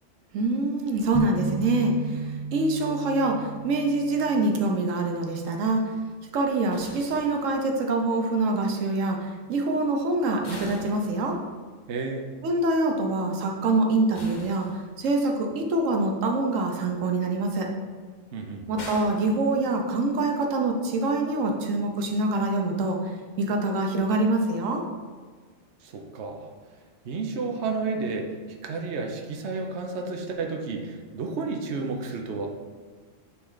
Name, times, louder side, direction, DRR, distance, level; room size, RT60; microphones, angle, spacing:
voice 1, 0.3-5.9 6.3-11.4 12.4-14.7 15.0-17.7 18.7-23.1 23.4-24.8, right 2 dB, 90° right, 2 dB, 1.2 m, -25 dB
sound 1, 1.1-5.2, right 2 dB, 15° right, 0.6 m, -35 dB
sound 2, 6.7-8.0 10.4-11.8 14.1-15.3 18.8-20.1, left 2 dB, 40° left, 0.9 m, -43 dB
voice 2, 11.9-12.3 18.3-18.7 25.8-26.5 27.0-28.4 28.6-32.5, right 4 dB, 65° right, 2 dB, 1.0 m, -31 dB
9.6 x 3.3 x 3.9 m, 1.5 s
omnidirectional pair, 1.3 m